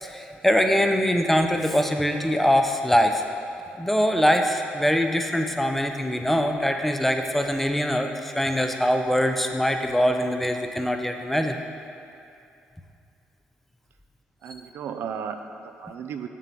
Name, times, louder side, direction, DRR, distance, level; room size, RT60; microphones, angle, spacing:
voice 1, 0.0-3.2 3.8-11.6, equal, 5° left, 4 dB, 0.6 m, -23 dB
voice 2, 14.4-16.3, right 7 dB, 75° right, 7 dB, 0.4 m, -35 dB
7.3 x 6.8 x 4.2 m, 2.6 s
cardioid pair, 80°, 4 cm